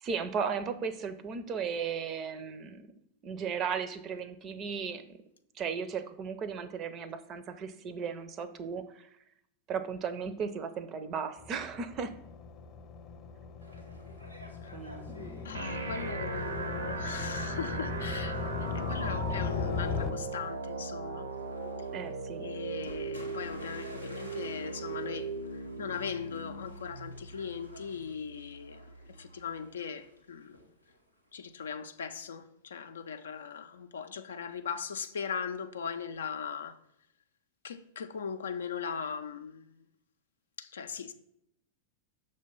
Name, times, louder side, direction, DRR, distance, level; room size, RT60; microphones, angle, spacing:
voice 1, 0.0-2.9 3.2-5.2 5.6-9.1 9.7-12.2 14.7-15.6 21.9-22.5, right 6 dB, 30° right, 0.5 m, -36 dB
sound 1, 11.4-20.1, left 6 dB, 35° left, 0.8 m, -38 dB
sound 2, 13.6-31.7, equal, 90° right, 1.1 m, -54 dB
voice 2, 15.4-18.5 18.7-21.3 22.4-25.3 25.8-28.8 29.2-30.6 31.3-36.8 37.6-39.7 40.6-41.1, left 6 dB, 65° left, 0.4 m, -39 dB
sound 3, 15.5-29.5, right 3 dB, 70° right, 0.7 m, -39 dB
6.4 x 3.3 x 5.3 m
figure-of-eight pair, 90°, 0 cm